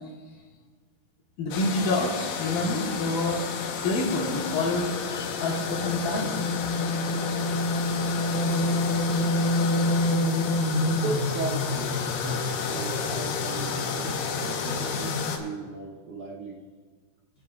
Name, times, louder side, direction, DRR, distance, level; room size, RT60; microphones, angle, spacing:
voice 1, 1.4-3.5 3.8-6.4, left 2 dB, 65° left, -2 dB, 2.5 m, -27 dB
sound 1, 1.5-15.4, left 3 dB, 90° left, 3.0 m, -28 dB
voice 2, 10.9-16.6, right 4 dB, 70° right, -4 dB, 2.0 m, -37 dB
25.0 x 8.4 x 2.3 m, 1.5 s
omnidirectional pair, 4.7 m